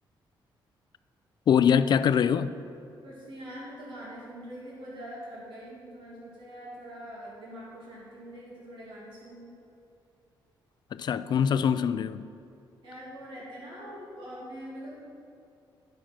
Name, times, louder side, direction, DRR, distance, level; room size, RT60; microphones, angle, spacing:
voice 1, 1.5-2.5 10.9-12.2, left 8 dB, 60° left, 0.4 m, -23 dB
voice 2, 3.0-9.6 12.8-14.9, equal, 70° right, 2.2 m, -43 dB
10.5 x 6.4 x 6.0 m
cardioid pair, 95°, 9 cm